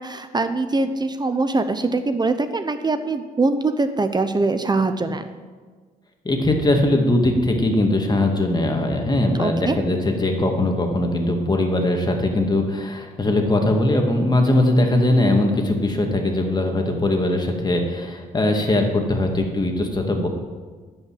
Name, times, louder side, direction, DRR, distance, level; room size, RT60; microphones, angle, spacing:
voice 1, 0.0-5.3 9.4-9.8, right 3 dB, 25° right, 9 dB, 0.9 m, -22 dB
voice 2, 6.2-20.3, left 1 dB, 25° left, 3 dB, 2.1 m, -20 dB
11.0 x 5.6 x 8.8 m, 1.5 s
cardioid pair, 70°, 16 cm